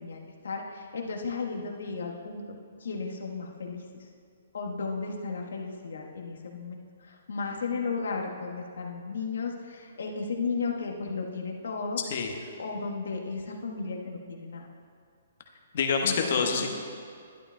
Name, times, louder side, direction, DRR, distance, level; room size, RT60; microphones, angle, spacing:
voice 1, 0.0-3.8 4.5-12.0 12.6-14.7 16.0-16.7, left 4 dB, 80° left, 0 dB, 1.2 m, -34 dB
voice 2, 12.0-12.3 15.7-16.7, left 5 dB, 55° left, 3 dB, 1.1 m, -26 dB
11.5 x 11.5 x 2.2 m, 2.3 s
hypercardioid pair, 145°, 0 cm